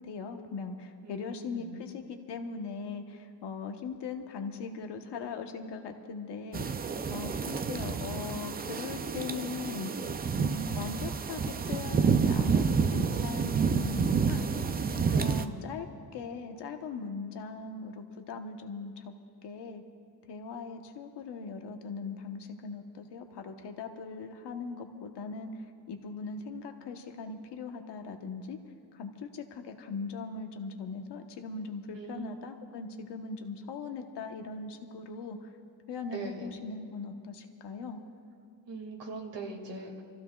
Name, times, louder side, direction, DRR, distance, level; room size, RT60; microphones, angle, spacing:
voice 1, 0.0-9.9 10.4-14.5 14.9-15.9 16.1-19.1 19.4-19.8 20.3-28.6 28.9-35.5 35.9-38.0, left 4 dB, 75° left, 5 dB, 1.2 m, -40 dB
voice 2, 1.0-1.8 15.0-15.5 31.9-32.3 36.1-36.5 38.7-40.0, right 3 dB, 85° right, 0 dB, 2.3 m, -41 dB
sound 1, 6.5-15.5, right 5 dB, 25° right, 0.4 m, -29 dB
29.5 x 15.0 x 2.3 m, 2.3 s
wide cardioid pair, 150°, 42 cm